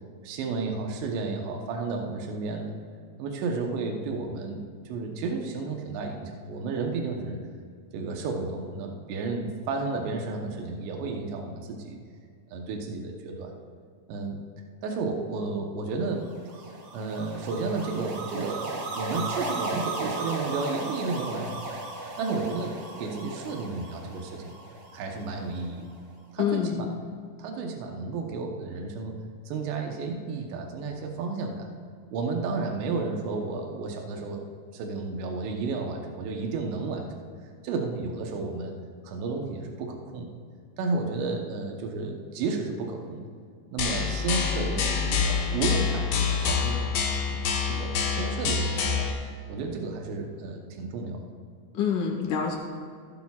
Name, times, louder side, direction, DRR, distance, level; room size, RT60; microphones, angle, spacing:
voice 1, 0.2-2.7 3.2-7.4 7.9-12.0 12.5-13.5 14.1-14.4 14.8-16.3 16.6-21.7 22.2-24.6 24.9-25.9 26.3-26.9 27.4-29.2 29.5-31.7 32.1-34.5 34.7-37.1 37.6-38.8 39.0-40.3 40.8-43.3 43.7-46.9 47.3-49.1 49.5-51.2, right 3 dB, 80° right, 2 dB, 3.2 m, -32 dB
sound 1, 16.3-25.6, right 2 dB, 50° right, 2.9 m, -36 dB
voice 2, 26.4-26.9 51.7-52.6, left 7 dB, 55° left, -1 dB, 2.6 m, -26 dB
sound 2, 43.8-49.1, left 6 dB, 90° left, 1.6 m, -26 dB
15.0 x 11.5 x 2.4 m, 2.2 s
omnidirectional pair, 5.0 m